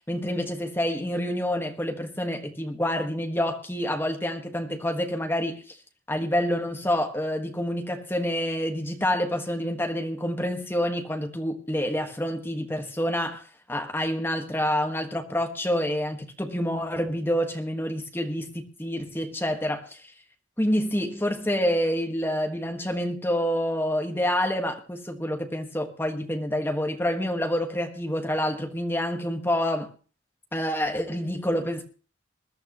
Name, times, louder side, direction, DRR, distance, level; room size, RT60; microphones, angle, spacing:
voice 1, 0.0-5.8 6.1-20.1 20.6-29.9 30.5-31.8, equal, 10° left, 1.5 m, -27 dB
21.0 x 12.0 x 3.1 m
head